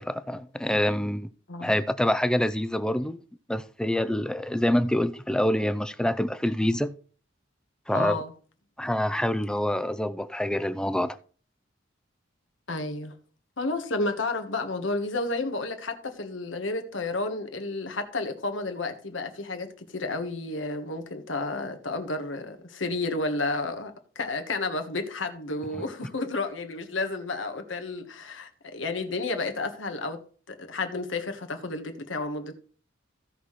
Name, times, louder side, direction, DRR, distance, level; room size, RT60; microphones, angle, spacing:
voice 1, 0.0-1.3 1.6-3.2 3.5-6.9 7.9-8.2 8.8-11.2 25.7-25.8, left 1 dB, 5° left, 0.5 m, -26 dB
voice 2, 7.9-8.3 12.7-13.1 13.6-30.2 30.5-32.6, left 2 dB, 75° left, 1.4 m, -31 dB
16.0 x 5.8 x 3.2 m
head